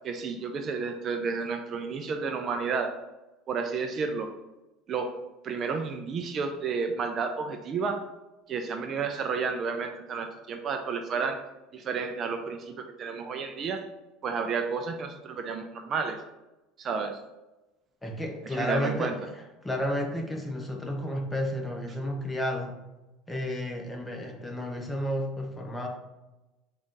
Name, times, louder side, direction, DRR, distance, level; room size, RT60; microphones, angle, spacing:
voice 1, 0.0-3.0 3.5-4.3 4.9-5.1 5.4-8.0 8.5-11.4 11.7-13.8 14.2-16.2 16.8-17.2 18.5-19.2, right 5 dB, 35° right, 5 dB, 0.3 m, -31 dB
voice 2, 18.0-19.1 19.6-22.8 23.3-25.9, equal, 10° left, 1 dB, 0.6 m, -31 dB
3.8 x 2.4 x 3.7 m, 1.0 s
cardioid pair, 140°, 0 cm